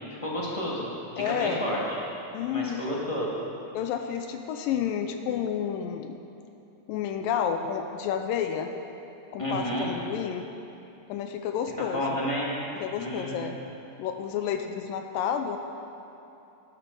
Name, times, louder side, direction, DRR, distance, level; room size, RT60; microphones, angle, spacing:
voice 1, 0.1-0.9 1.1-2.0 2.5-3.3 9.4-9.9 11.9-12.6 13.0-13.5, equal, 20° left, -6 dB, 0.8 m, -30 dB
voice 2, 1.2-1.6 2.3-2.8 3.7-6.2 6.9-8.7 9.3-10.5 11.1-12.0 12.8-13.6 14.0-15.6, left 8 dB, 80° left, 6 dB, 2.2 m, -30 dB
12.5 x 12.0 x 5.3 m, 2.8 s
omnidirectional pair, 4.2 m